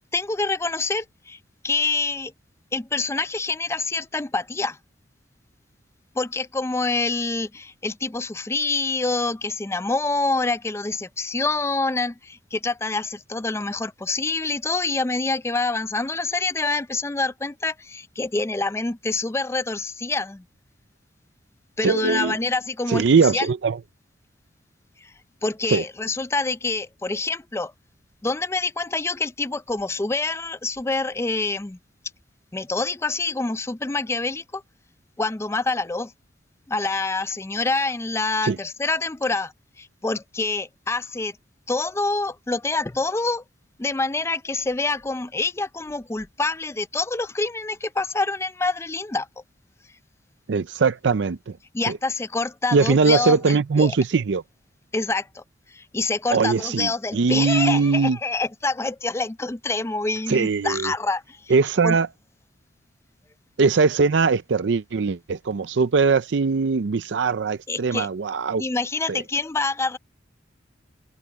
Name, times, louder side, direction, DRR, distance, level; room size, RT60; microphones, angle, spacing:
voice 1, 0.1-1.4 1.6-2.3 2.7-4.8 6.2-20.4 21.8-23.5 25.4-27.7 28.2-31.8 32.5-34.6 35.2-36.1 36.7-39.5 39.8-41.3 41.7-43.4 43.8-49.3 51.7-53.9 54.9-55.4 55.7-61.5 61.8-62.0 67.7-68.1 68.6-70.0, left 3 dB, 15° left, 0.4 m, -26 dB
voice 2, 21.8-22.4 22.9-23.8 25.7-25.8 38.4-38.6 50.5-51.6 51.9-52.0 52.7-54.4 56.3-58.2 60.3-60.9 61.5-62.1 63.6-68.6 69.1-69.2, right 4 dB, 75° right, 0.5 m, -21 dB
head